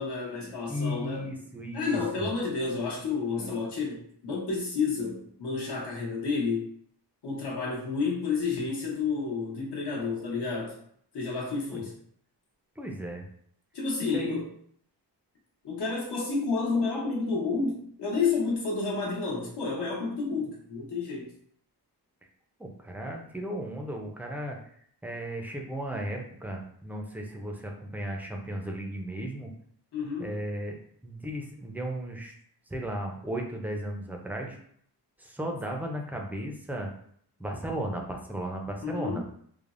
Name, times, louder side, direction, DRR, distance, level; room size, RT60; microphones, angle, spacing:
voice 1, 0.0-1.3 1.7-6.6 7.2-10.8 11.1-11.9 13.7-14.5 15.6-21.3 29.9-30.3 38.8-39.3, left 4 dB, 75° left, -4 dB, 1.0 m, -30 dB
voice 2, 0.7-2.3 11.7-11.8 12.8-13.3 14.1-14.4 22.6-24.6 25.0-29.5 30.2-30.8 31.0-32.3 32.7-34.6 35.2-36.9 37.4-39.2, right 1 dB, 5° right, 1 dB, 0.4 m, -35 dB
3.2 x 2.0 x 2.4 m, 0.64 s
wide cardioid pair, 90°, 41 cm